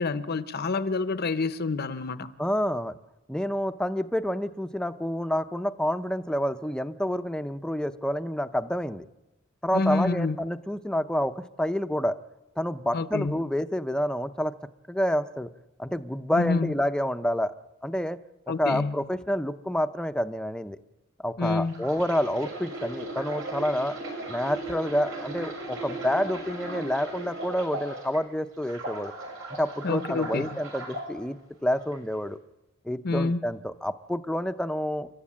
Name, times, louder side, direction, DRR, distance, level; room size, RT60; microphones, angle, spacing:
voice 1, 0.0-2.3 9.7-10.4 12.9-13.4 16.3-16.7 18.5-19.0 21.4-21.8 29.8-30.6 33.0-33.4, left 3 dB, 50° left, 0.8 m, -27 dB
voice 2, 2.4-3.0 3.3-9.1 9.6-12.2 12.6-14.5 14.9-15.5 15.8-17.5 17.8-18.2 18.6-20.8 21.2-24.0 24.3-29.1 29.6-32.4 32.8-35.1, equal, 5° left, 0.7 m, -28 dB
sound 1, 21.7-28.2 28.6-31.1 31.7-32.0, right 2 dB, 80° right, 6.5 m, -37 dB
30.0 x 12.5 x 8.7 m
head